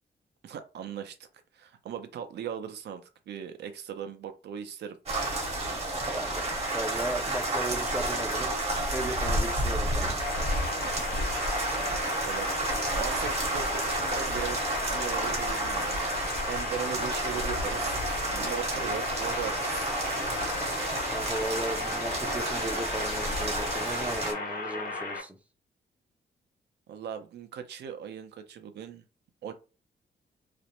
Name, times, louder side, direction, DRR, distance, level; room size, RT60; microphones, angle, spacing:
voice 1, 0.4-1.3 1.5-5.0 10.8-11.2 11.7-12.5 12.9-14.6 14.9-18.0 18.3-19.9 26.9-29.0 29.4-29.5, right 8 dB, 75° right, 0.5 m, -39 dB
sound 1, 5.1-24.3, right 1 dB, 35° right, 0.8 m, -30 dB
voice 2, 6.1-8.6 8.9-10.3 21.1-25.4, right 1 dB, 10° right, 0.3 m, -36 dB
sound 2, 10.2-25.2, left 3 dB, 55° left, 0.6 m, -36 dB
2.4 x 2.0 x 2.9 m
wide cardioid pair, 150°, 17 cm